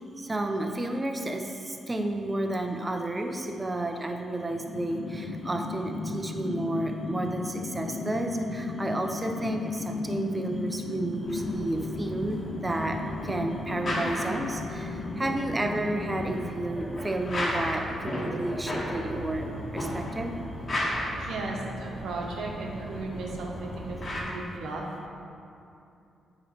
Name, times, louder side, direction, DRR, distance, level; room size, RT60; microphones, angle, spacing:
voice 1, 0.2-19.5 19.7-20.4, right 1 dB, 20° right, 4 dB, 0.6 m, -31 dB
sound 1, 4.3-16.5, left 3 dB, 70° left, 0.4 m, -35 dB
sound 2, 11.2-24.2, equal, 45° left, 1.4 m, -35 dB
voice 2, 21.1-24.8, right 3 dB, 80° right, -1 dB, 0.9 m, -36 dB
8.7 x 3.1 x 4.3 m, 2.7 s
cardioid pair, 80°, 0 cm